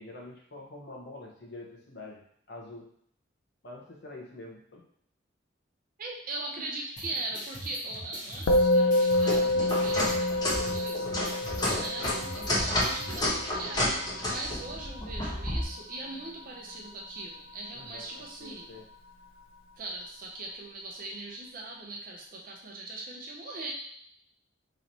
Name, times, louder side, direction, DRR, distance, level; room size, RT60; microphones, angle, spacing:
voice 1, 0.0-2.2 2.5-2.9 3.6-4.8 11.4-11.7 17.7-18.8, left 2 dB, 60° left, -1 dB, 0.9 m, -46 dB
voice 2, 6.0-11.3 11.7-18.7 19.8-23.7, right 2 dB, 45° right, -1 dB, 0.6 m, -40 dB
sound 1, 7.0-13.2, equal, 45° left, 1.2 m, -43 dB
Musical instrument, 8.5-18.0, left 1 dB, 90° left, 0.4 m, -29 dB
sound 2, 9.1-15.7, left 1 dB, 20° left, 0.8 m, -30 dB
3.1 x 2.9 x 4.0 m, 0.66 s
head